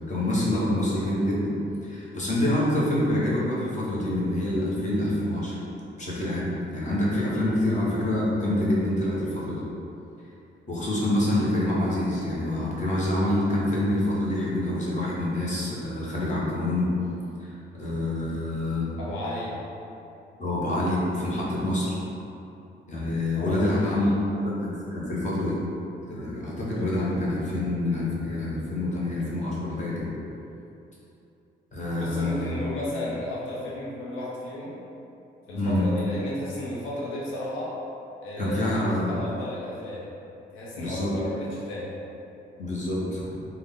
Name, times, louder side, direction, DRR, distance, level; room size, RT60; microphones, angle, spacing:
voice 1, 0.1-1.5 1.8-5.6 6.0-6.5 6.7-9.6 10.7-16.9 17.4-18.9 20.4-21.9 22.9-24.1 24.4-25.6 26.1-30.0 31.7-32.5 35.5-35.8 38.4-39.1 40.8-41.1 42.6-43.3, left 1 dB, 35° left, -6 dB, 1.1 m, -26 dB
voice 2, 19.0-19.5 23.4-24.2 31.9-34.8 35.5-37.7 38.2-40.1 40.5-42.0, left 1 dB, 85° left, -6 dB, 0.7 m, -34 dB
3.7 x 2.2 x 3.6 m, 2.8 s
cardioid pair, 90°, 20 cm